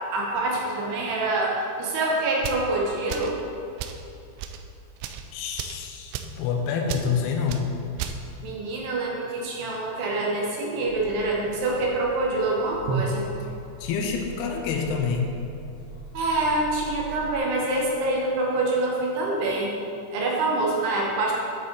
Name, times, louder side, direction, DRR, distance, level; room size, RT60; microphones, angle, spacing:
voice 1, 0.1-3.4 8.4-13.3 16.1-19.7 20.1-21.3, right 2 dB, 70° right, -2 dB, 2.8 m, -25 dB
sound 1, 2.4-2.7 3.1-3.4 3.8-4.0 4.4-4.6 5.0-5.2 5.6-5.8 6.1-6.4 6.9-7.1 7.5-7.6 8.0-8.2, right 9 dB, 85° right, 2.4 m, -33 dB
voice 2, 5.3-7.7 13.8-15.3, left 6 dB, 85° left, 2 dB, 2.3 m, -27 dB
sound 2, 10.9-17.4, equal, 65° left, 2.9 m, -43 dB
9.2 x 7.8 x 3.9 m, 2.7 s
omnidirectional pair, 5.5 m